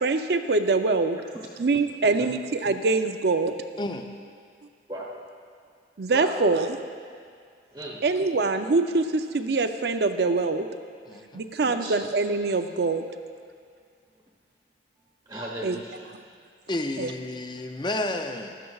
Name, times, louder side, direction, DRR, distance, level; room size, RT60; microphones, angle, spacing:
voice 1, 0.0-1.2 1.6-3.5 6.0-6.8 8.0-10.7 11.3-13.0 15.6-15.8 17.0-17.1, right 3 dB, 60° right, 8 dB, 0.5 m, -24 dB
voice 2, 3.8-4.1 11.1-11.5 16.7-18.5, left 1 dB, 25° left, 5 dB, 0.5 m, -31 dB
voice 3, 4.9-5.2 6.1-6.4 7.7-8.0 11.6-11.9 15.3-16.1, right 1 dB, 20° right, -4 dB, 1.0 m, -36 dB
15.5 x 12.0 x 2.4 m, 2.2 s
head